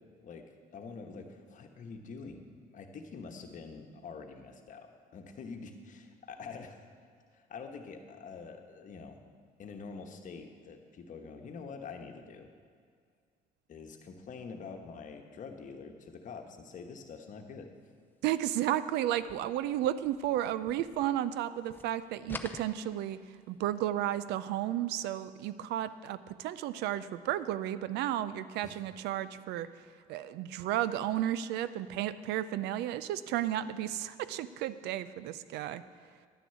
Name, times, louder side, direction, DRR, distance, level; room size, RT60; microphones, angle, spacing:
voice 1, 0.7-2.4 2.7-6.8 7.3-9.2 9.6-12.5 13.7-17.7 28.6-28.8, left 5 dB, 50° left, 5 dB, 1.3 m, -46 dB
voice 2, 18.2-23.2 23.5-29.7 30.1-35.8, right 12 dB, 85° right, 15 dB, 0.5 m, -33 dB
sound 1, 19.1-21.4 21.7-23.5, left 2 dB, 10° left, 0.7 m, -47 dB
11.0 x 6.1 x 8.2 m, 2.1 s
cardioid pair, 110°, 17 cm